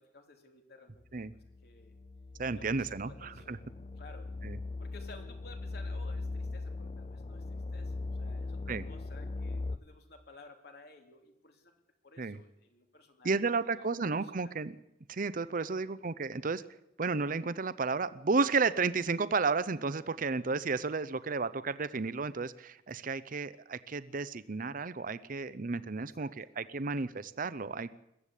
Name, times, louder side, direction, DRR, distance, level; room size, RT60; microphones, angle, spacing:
voice 1, 0.0-1.0 1.3-2.0 2.5-3.7 4.0-4.3 4.8-14.6 15.6-15.9 26.1-26.3, left 3 dB, 65° left, 4 dB, 3.1 m, -56 dB
sound 1, 1.2-9.8, left 3 dB, 35° left, 0.7 m, -40 dB
voice 2, 2.4-3.6 4.4-4.6 8.7-8.8 12.2-12.4 13.2-14.7 15.1-16.6 17.0-27.9, right 4 dB, 50° right, 15 dB, 0.7 m, -32 dB
22.0 x 14.5 x 8.4 m, 0.87 s
head